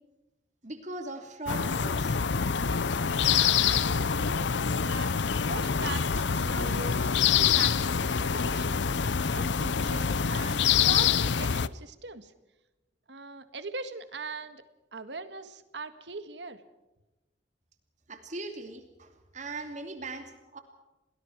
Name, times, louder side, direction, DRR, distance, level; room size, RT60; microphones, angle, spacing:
voice 1, 0.6-2.2 18.1-20.6, right 2 dB, 40° right, 6 dB, 2.7 m, -39 dB
sound 1, 1.5-11.7, left 7 dB, 75° left, 0.7 m, -26 dB
voice 2, 3.2-5.1 5.4-12.3 13.1-14.6 14.9-16.6, right 3 dB, 70° right, 10 dB, 1.8 m, -41 dB
29.5 x 19.5 x 4.6 m, 1.0 s
head